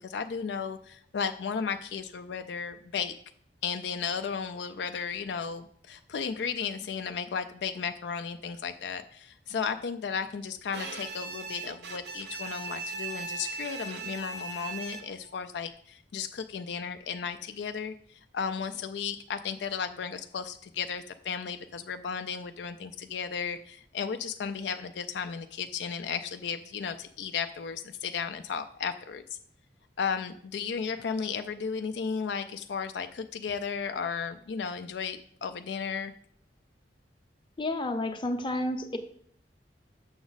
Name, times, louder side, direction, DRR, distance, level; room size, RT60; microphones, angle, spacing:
voice 1, 0.0-3.1 3.6-29.2 30.0-36.1, left 6 dB, 70° left, 8 dB, 0.4 m, -34 dB
Bowed string instrument, 10.7-15.3, right 4 dB, 65° right, 0.7 m, -39 dB
voice 2, 37.6-39.0, left 1 dB, 30° left, 6 dB, 0.7 m, -30 dB
6.9 x 6.1 x 4.0 m, 0.63 s
head